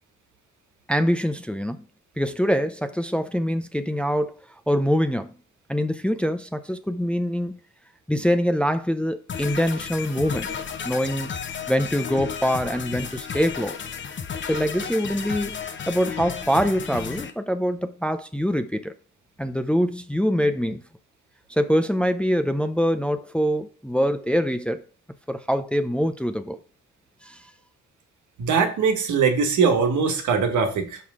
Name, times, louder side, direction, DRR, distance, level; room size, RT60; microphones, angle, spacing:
voice 1, 0.9-1.8 2.2-4.3 4.7-5.3 5.7-7.6 8.1-10.5 10.8-11.3 11.7-13.8 14.4-18.9 19.4-20.8 21.5-24.8 25.3-26.6 27.2-27.4, equal, 5° left, 0.6 m, -24 dB
sound 1, 9.3-17.3, left 7 dB, 40° left, 0.9 m, -33 dB
voice 2, 28.4-31.0, right 5 dB, 75° right, 1.6 m, -21 dB
6.3 x 5.6 x 3.7 m
cardioid pair, 90°, 30 cm